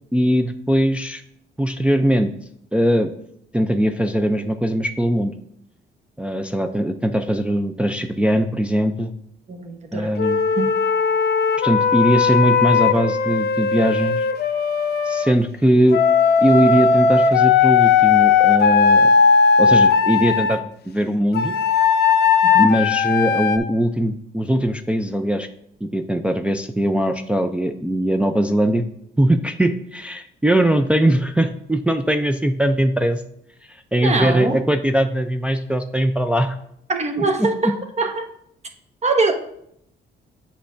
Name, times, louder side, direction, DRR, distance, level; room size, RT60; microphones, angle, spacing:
voice 1, 0.1-1.2 1.6-2.3 2.7-3.1 3.5-5.3 6.2-9.1 9.9-10.4 11.6-14.3 15.0-16.0 16.4-19.1 19.6-21.5 22.6-25.5 25.8-28.8 29.2-33.2 33.6-36.6 37.4-37.7, equal, 5° right, 5 dB, 0.3 m, -20 dB
voice 2, 9.5-10.1 10.6-10.7 22.4-22.7 34.0-34.6 36.9-38.3 39.0-39.3, right 3 dB, 35° right, 5 dB, 0.9 m, -22 dB
Wind instrument woodwind instrument, 10.2-15.3 15.9-20.6 21.3-23.6, left 5 dB, 55° left, 0.6 m, -17 dB
8.1 x 5.6 x 2.5 m, 0.73 s
cardioid pair, 90°, 20 cm